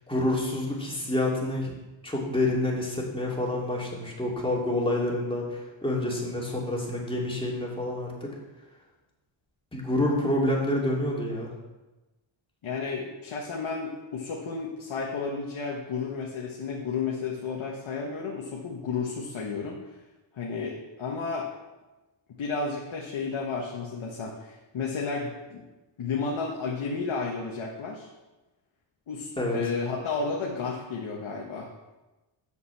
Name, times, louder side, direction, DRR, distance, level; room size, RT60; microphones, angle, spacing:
voice 1, 0.1-1.7 2.0-8.3 9.7-11.5 29.4-29.6, left 1 dB, 10° left, -3 dB, 2.7 m, -28 dB
voice 2, 12.6-19.8 20.3-21.5 22.4-25.6 26.0-28.1 29.1-31.7, left 4 dB, 80° left, -1 dB, 1.4 m, -32 dB
7.3 x 6.7 x 7.0 m, 1.1 s
wide cardioid pair, 95°, 48 cm